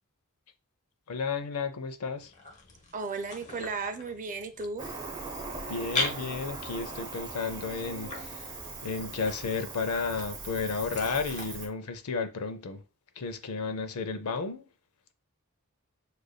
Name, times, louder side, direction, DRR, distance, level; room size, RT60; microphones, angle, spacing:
voice 1, 1.1-2.3 5.7-8.5 8.8-12.8 13.2-14.6, left 4 dB, 75° left, 0.5 m, -33 dB
sound 1, 2.2-11.4, left 2 dB, 35° left, 0.9 m, -40 dB
voice 2, 2.9-4.9, right 4 dB, 35° right, 0.5 m, -35 dB
Cricket, 4.8-11.7, right 3 dB, 20° right, 0.8 m, -40 dB
6.6 x 2.5 x 2.2 m
head